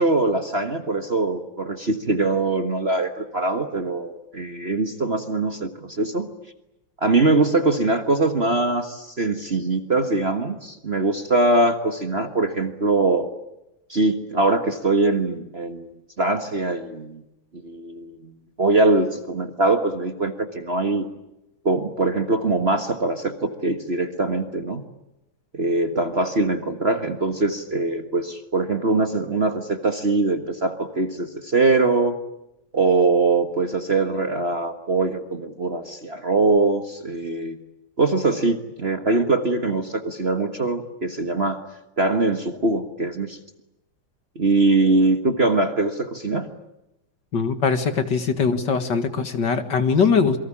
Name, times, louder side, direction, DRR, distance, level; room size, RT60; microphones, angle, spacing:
voice 1, 0.0-6.3 7.0-13.3 13.9-15.9 16.2-17.2 17.5-21.1 21.6-24.8 25.5-32.2 32.7-37.6 38.0-41.6 42.0-43.4 44.3-46.5, right 2 dB, 30° right, 8 dB, 1.6 m, -22 dB
voice 2, 47.3-50.4, left 5 dB, 55° left, 9 dB, 2.4 m, -21 dB
28.0 x 23.5 x 8.7 m, 0.91 s
omnidirectional pair, 2.4 m